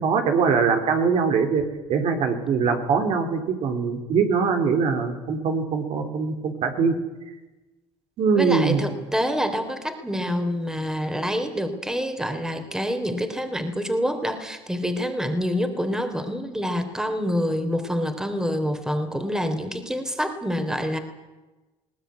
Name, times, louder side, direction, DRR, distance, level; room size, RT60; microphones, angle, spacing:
voice 1, 0.0-1.6 1.9-6.9 8.2-8.8, right 5 dB, 60° right, 6 dB, 4.3 m, -22 dB
voice 2, 8.3-21.0, equal, 5° right, 8 dB, 3.4 m, -27 dB
21.0 x 19.0 x 9.6 m, 1.1 s
supercardioid pair, 100°, 12 cm